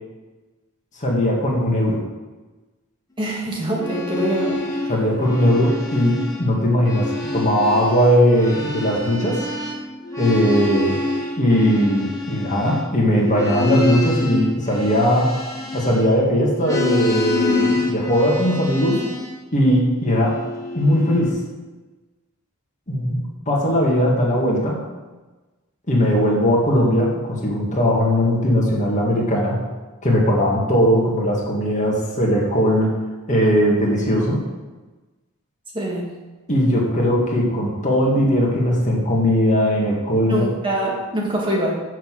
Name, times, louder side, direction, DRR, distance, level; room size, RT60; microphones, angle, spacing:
voice 1, 1.0-2.0 4.9-9.4 10.2-10.9 11.4-15.3 15.7-19.0 19.5-20.4 20.7-21.4 22.9-24.8 25.9-29.6 30.0-32.9 33.3-34.4 36.5-40.5, equal, 35° left, -2 dB, 2.1 m, -19 dB
voice 2, 3.2-4.9 35.7-36.0 40.3-41.7, right 1 dB, 20° right, -3 dB, 2.0 m, -24 dB
sound 1, 3.6-6.5 6.7-16.2 16.6-19.4 20.0-21.3, left 2 dB, 15° left, 1.9 m, -26 dB
7.3 x 6.5 x 7.6 m, 1.2 s
head